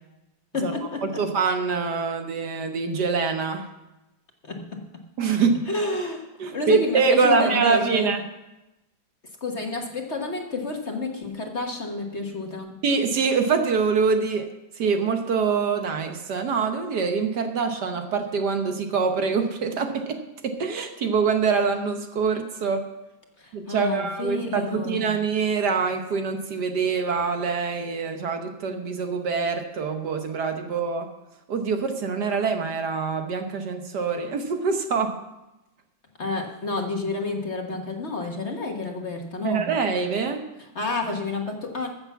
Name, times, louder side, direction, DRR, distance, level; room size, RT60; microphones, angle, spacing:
voice 1, 0.5-1.3 4.4-5.1 5.7-8.2 9.4-12.8 23.4-25.1 36.2-39.7 40.6-41.9, left 2 dB, 40° left, 2 dB, 1.4 m, -30 dB
voice 2, 1.2-3.7 5.2-5.6 6.4-8.2 12.8-14.5 14.8-22.9 23.5-31.1 31.5-35.2 39.4-40.4, right 5 dB, 60° right, 6 dB, 1.5 m, -24 dB
14.0 x 7.1 x 7.2 m, 0.97 s
omnidirectional pair, 2.1 m